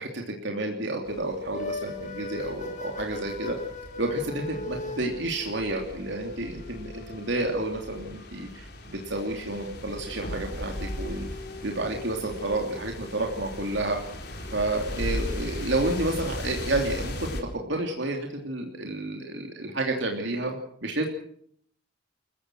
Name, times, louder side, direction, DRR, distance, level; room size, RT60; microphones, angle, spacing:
voice 1, 0.0-3.6 4.0-11.3 11.6-14.0 14.5-21.1, right 2 dB, 70° right, 2 dB, 3.1 m, -30 dB
sound 1, 1.1-17.4, left 1 dB, 55° left, 4.3 m, -38 dB
sound 2, 1.5-8.8 10.0-16.1, left 2 dB, 40° left, 3.2 m, -41 dB
28.5 x 15.5 x 6.3 m, 0.62 s
head